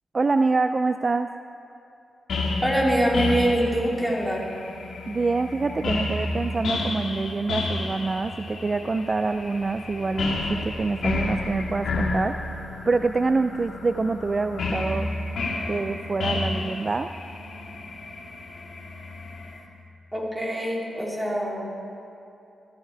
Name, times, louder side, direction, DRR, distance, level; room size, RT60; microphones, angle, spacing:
voice 1, 0.1-1.3 5.1-15.1 15.7-17.1, right 3 dB, 35° right, 9 dB, 0.3 m, -26 dB
sound 1, 2.3-19.6, left 2 dB, 70° left, 1.8 m, -31 dB
voice 2, 2.6-4.5 20.1-21.7, right 1 dB, 5° right, -3 dB, 2.8 m, -24 dB
13.5 x 12.0 x 4.5 m, 2.7 s
cardioid pair, 80°, 0 cm